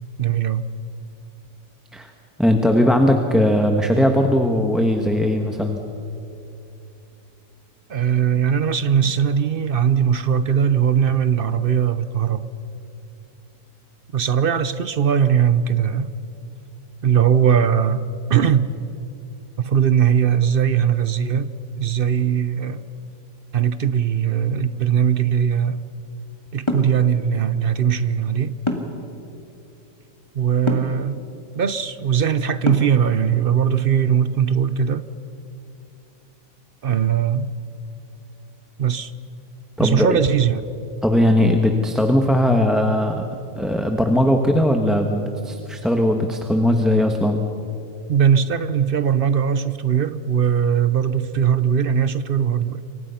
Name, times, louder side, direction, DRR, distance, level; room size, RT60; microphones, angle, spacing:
voice 1, 0.2-0.7 7.9-12.5 14.1-16.1 17.0-18.7 19.6-21.5 21.8-22.8 23.5-25.8 26.5-28.6 30.3-31.2 31.6-35.0 36.8-37.5 38.8-39.1 39.8-40.6 48.1-52.8, right 8 dB, 50° right, 0.7 m, -20 dB
voice 2, 2.4-5.8 39.8-40.2 41.0-43.2 43.5-47.4, left 1 dB, ahead, 1.1 m, -19 dB
sound 1, 26.7-27.0 28.7-29.0 30.7-31.0 32.6-33.0, left 1 dB, 15° left, 2.0 m, -24 dB
28.0 x 24.0 x 5.8 m
omnidirectional pair, 1.7 m